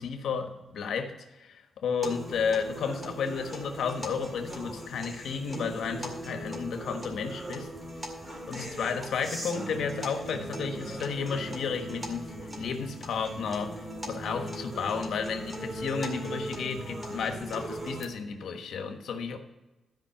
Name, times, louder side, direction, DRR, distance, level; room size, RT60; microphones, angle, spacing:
voice 1, 0.0-7.7 8.5-19.4, left 6 dB, 80° left, 5 dB, 1.3 m, -32 dB
sound 1, 2.0-18.0, right 1 dB, 20° right, 2.1 m, -39 dB
13.5 x 5.3 x 5.8 m, 1.1 s
wide cardioid pair, 130°, 0 cm